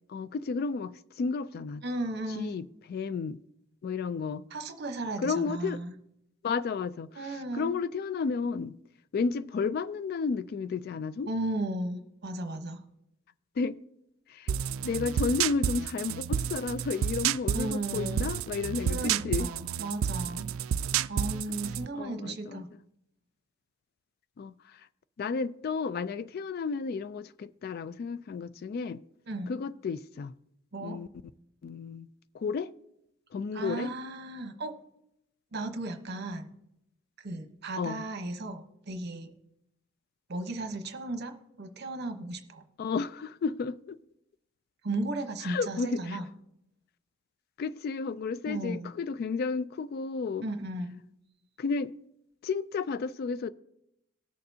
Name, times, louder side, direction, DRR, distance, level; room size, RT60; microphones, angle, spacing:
voice 1, 0.0-1.8 2.3-3.4 3.8-4.4 5.2-5.8 6.4-8.8 9.1-11.3 13.6-13.8 14.3-14.6 14.8-19.5 21.9-22.6 24.4-24.9 25.2-29.0 29.5-30.3 30.8-31.1 31.6-32.1 32.3-32.7 33.3-33.9 37.8-38.0 42.8-44.0 45.4-46.2 47.6-50.4 51.6-51.9 52.4-53.5, left 5 dB, 50° left, 0.3 m, -32 dB
voice 2, 1.8-2.6 4.5-5.9 7.2-7.7 11.3-12.8 17.5-18.3 18.9-20.5 21.1-22.7 29.3-29.5 30.7-31.0 33.5-34.7 35.5-36.5 37.2-39.3 40.3-42.6 44.8-46.2 48.5-48.9 50.4-50.9, right 2 dB, 55° right, 1.0 m, -35 dB
sound 1, 14.5-21.9, right 9 dB, 85° right, 0.3 m, -30 dB
19.0 x 6.7 x 2.8 m
head